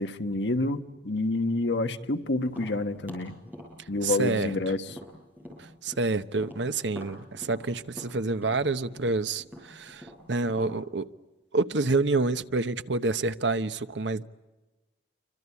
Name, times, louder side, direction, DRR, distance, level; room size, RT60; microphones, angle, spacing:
voice 1, 0.0-3.3 3.9-4.9, left 2 dB, 80° left, 8 dB, 1.4 m, -28 dB
Tap, 2.4-6.1 6.4-10.8, equal, 10° right, 7.7 m, -45 dB
voice 2, 4.0-4.5 5.8-11.0 11.5-14.2, right 3 dB, 85° right, 12 dB, 1.0 m, -28 dB
28.0 x 25.5 x 8.4 m, 1.2 s
head